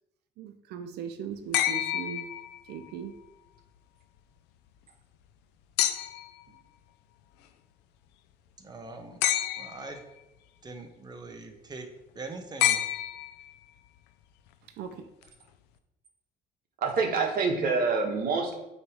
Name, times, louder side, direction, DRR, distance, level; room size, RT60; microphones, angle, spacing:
voice 1, 0.4-2.3 2.6-3.2 14.6-15.1, right 7 dB, 75° right, 7 dB, 0.6 m, -39 dB
sound 1, 1.5-2.9 5.8-6.4 9.2-10.0 12.6-13.6 15.2-15.3, left 12 dB, 90° left, 0.5 m, -28 dB
voice 2, 8.6-9.2 9.6-10.0 10.6-11.9 12.1-12.8, right 3 dB, 25° right, 5 dB, 1.0 m, -42 dB
voice 3, 16.8-18.5, right 4 dB, 60° right, 2 dB, 1.4 m, -26 dB
8.1 x 3.2 x 4.9 m, 0.93 s
cardioid pair, 110°, 17 cm